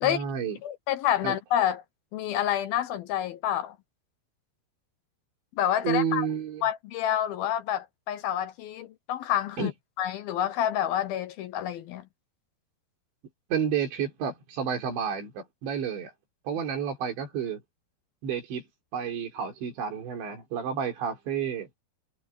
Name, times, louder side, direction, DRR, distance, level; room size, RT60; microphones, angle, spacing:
voice 1, 0.0-0.6 1.2-1.4 5.8-6.6 9.6-9.7 13.5-16.1 16.4-17.6 18.2-18.6 18.9-21.7, right 7 dB, 90° right, 6.3 m, -30 dB
voice 2, 0.6-1.8 2.1-3.8 5.6-6.3 6.6-9.7 10.0-12.1, left 11 dB, 70° left, 2.5 m, -28 dB
omnidirectional pair, 5.0 m